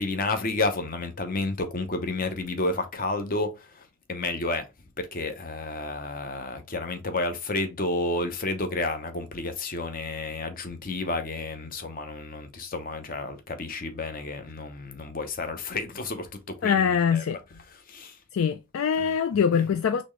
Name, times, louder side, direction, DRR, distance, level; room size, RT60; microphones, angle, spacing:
voice 1, 0.0-3.5 4.1-4.6 5.0-17.2 17.9-18.5 19.5-19.6, left 2 dB, 40° left, 0.7 m, -31 dB
voice 2, 16.6-17.4 18.3-20.0, left 7 dB, 65° left, 0.3 m, -23 dB
4.2 x 3.1 x 3.1 m
head